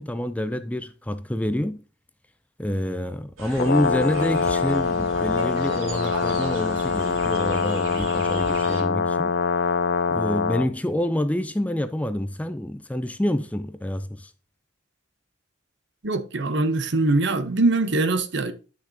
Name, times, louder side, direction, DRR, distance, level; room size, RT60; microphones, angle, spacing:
voice 1, 0.0-1.8 2.6-9.3 10.1-14.3, left 1 dB, 5° left, 0.4 m, -27 dB
sound 1, 3.4-8.8, right 2 dB, 85° right, 3.2 m, -36 dB
Brass instrument, 3.5-10.7, left 5 dB, 55° left, 0.6 m, -24 dB
voice 2, 16.0-18.5, right 2 dB, 60° right, 0.9 m, -22 dB
10.0 x 6.0 x 2.7 m
head